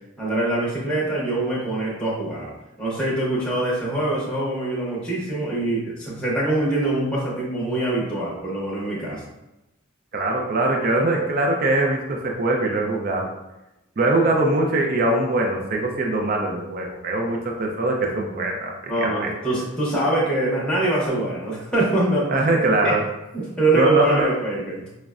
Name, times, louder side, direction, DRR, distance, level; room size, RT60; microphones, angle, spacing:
voice 1, 0.2-2.5 2.8-9.2 18.9-22.3 22.8-23.0 23.3-24.9, right 2 dB, 5° left, -6 dB, 0.7 m, -24 dB
voice 2, 10.1-13.3 14.0-19.3 22.3-23.0 23.7-24.3, right 2 dB, 40° right, 1 dB, 0.4 m, -22 dB
5.0 x 2.1 x 2.3 m, 0.95 s
head